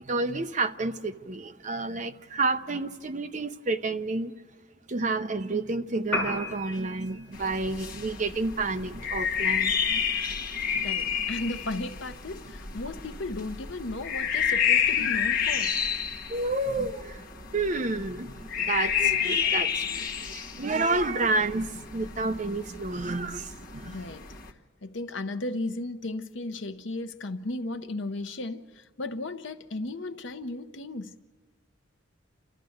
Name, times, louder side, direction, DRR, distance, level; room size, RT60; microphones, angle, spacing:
voice 1, 0.0-4.3 4.9-10.1 10.8-10.9 15.0-15.1 16.3-17.2 17.5-24.0, right 3 dB, 40° right, 0.6 m, -30 dB
Piano, 6.0-14.1, left 2 dB, 10° left, 6.2 m, -40 dB
sound 1, 7.3-24.5, left 7 dB, 45° left, 1.4 m, -30 dB
voice 2, 10.8-15.8 23.9-24.3 24.8-31.1, left 2 dB, 70° left, 0.8 m, -35 dB
29.5 x 13.5 x 7.9 m
head